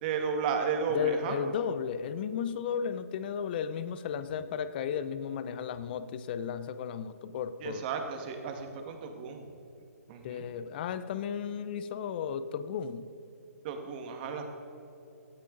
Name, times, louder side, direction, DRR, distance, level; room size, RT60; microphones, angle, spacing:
voice 1, 0.0-1.4 7.6-9.5 10.1-10.5 13.6-14.4, right 6 dB, 35° right, 4 dB, 1.9 m, -33 dB
voice 2, 0.9-7.9 10.2-13.1, left 7 dB, 35° left, 13 dB, 0.7 m, -34 dB
18.0 x 13.0 x 4.0 m, 3.0 s
hypercardioid pair, 155°, 9 cm